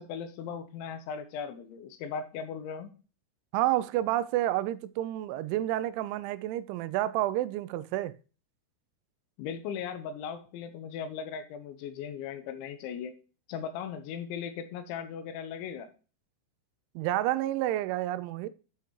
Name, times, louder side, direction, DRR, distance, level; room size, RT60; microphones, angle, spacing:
voice 1, 0.0-2.9 9.4-13.1 13.5-15.9, left 7 dB, 80° left, 3.3 m, -38 dB
voice 2, 3.5-8.1 17.0-18.5, right 14 dB, 85° right, 3.0 m, -29 dB
9.7 x 5.7 x 3.0 m
omnidirectional pair, 5.3 m